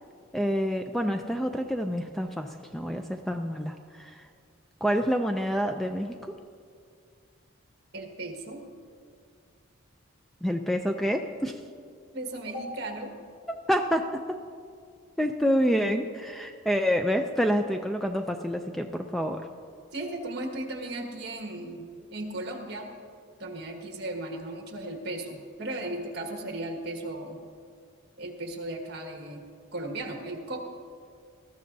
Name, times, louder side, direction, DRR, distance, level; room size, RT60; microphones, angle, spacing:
voice 1, 0.3-4.3 4.8-6.2 10.4-11.6 13.5-14.1 15.2-19.5, equal, ahead, 4 dB, 0.3 m, -27 dB
voice 2, 7.9-8.6 12.1-13.1 19.9-21.8 22.1-22.9 23.4-27.4 28.2-29.4 29.7-30.6, right 1 dB, 50° right, 2 dB, 1.7 m, -36 dB
19.5 x 14.0 x 2.7 m, 2.2 s
head